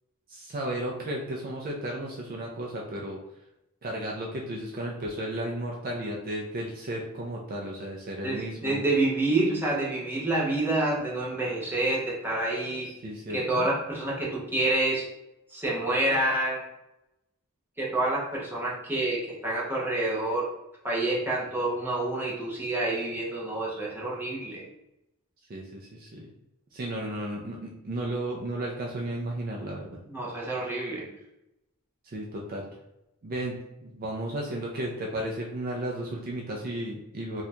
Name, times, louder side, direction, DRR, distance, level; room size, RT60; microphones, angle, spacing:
voice 1, 0.3-3.2 3.8-8.8 13.0-13.7 25.5-26.3 26.7-30.0 32.0-32.7 33.2-33.6 33.8-37.4, right 1 dB, 40° right, -2 dB, 0.5 m, -34 dB
voice 2, 8.2-12.9 13.3-15.0 15.5-16.6 17.8-20.5 20.8-24.6 30.1-31.1, right 2 dB, 10° right, -5 dB, 0.9 m, -28 dB
2.8 x 2.4 x 4.2 m, 0.90 s
head